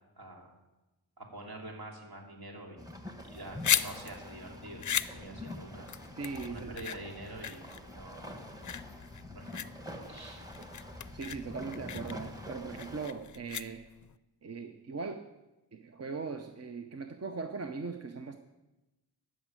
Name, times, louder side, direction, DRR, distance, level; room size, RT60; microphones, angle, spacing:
voice 1, 0.2-0.5 1.2-2.8 3.2-5.9 6.5-8.3 9.3-9.6 10.1-10.4, right 1 dB, 65° right, 0 dB, 3.1 m, -46 dB
sound 1, 2.8-13.1, left 1 dB, 10° right, 1.3 m, -45 dB
sound 2, 3.2-14.1, left 9 dB, 50° left, 0.5 m, -37 dB
voice 2, 6.2-6.8 11.1-13.8 14.4-15.2 15.7-18.4, right 4 dB, 40° right, 6 dB, 0.7 m, -39 dB
14.5 x 6.3 x 8.9 m, 1.0 s
wide cardioid pair, 135°, 40 cm